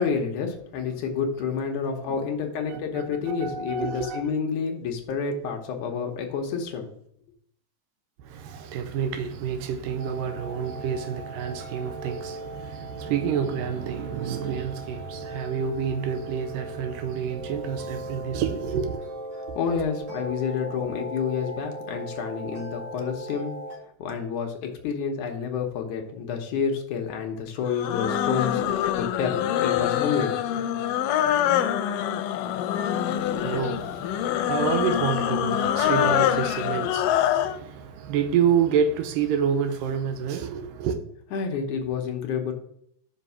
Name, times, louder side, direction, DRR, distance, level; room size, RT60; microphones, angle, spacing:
voice 1, 0.0-6.9 19.3-23.5 24.0-30.4 41.3-42.5, left 6 dB, 70° left, 2.3 m, -29 dB
voice 2, 2.7-4.2 8.2-19.1 19.5-19.8 33.4-41.0, right 7 dB, 85° right, 2.4 m, -28 dB
sound 1, 10.0-23.8, right 1 dB, 40° right, 2.7 m, -38 dB
sound 2, 27.6-37.6, left 10 dB, 90° left, 2.3 m, -25 dB
5.8 x 5.1 x 5.7 m
omnidirectional pair, 3.8 m